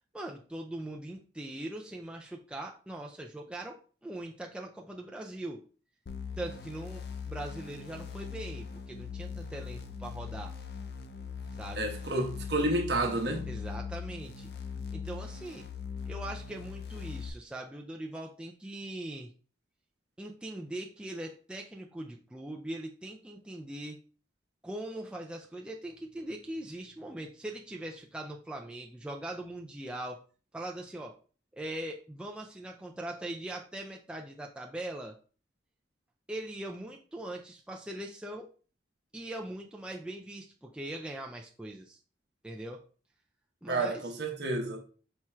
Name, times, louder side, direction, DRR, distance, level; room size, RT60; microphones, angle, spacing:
voice 1, 0.1-5.6 6.4-10.6 11.6-11.9 13.5-14.5 14.9-15.7 16.1-19.3 20.2-24.0 24.6-30.2 30.5-31.2 31.5-35.2 36.3-38.5 39.1-42.0 42.4-42.8 43.6-44.0, right 1 dB, 5° right, 0.3 m, -41 dB
sound 1, 6.1-17.3, left 6 dB, 55° left, 0.5 m, -40 dB
voice 2, 11.8-13.5 43.7-44.8, right 2 dB, 65° right, 0.9 m, -30 dB
4.4 x 2.3 x 4.3 m
head